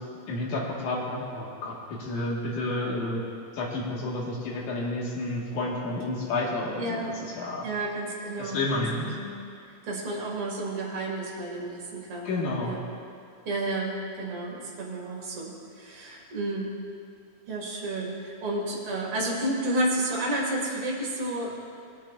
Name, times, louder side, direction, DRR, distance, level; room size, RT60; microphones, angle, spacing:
voice 1, 0.3-3.2 3.5-7.7 8.4-9.1 12.3-12.8, left 2 dB, 75° left, -3 dB, 2.9 m, -30 dB
voice 2, 6.8-7.1 7.6-9.3 9.8-12.8 13.5-16.7 17.5-21.5, right 1 dB, 50° right, -3 dB, 2.6 m, -31 dB
21.0 x 9.0 x 2.4 m, 2.3 s
omnidirectional pair, 3.5 m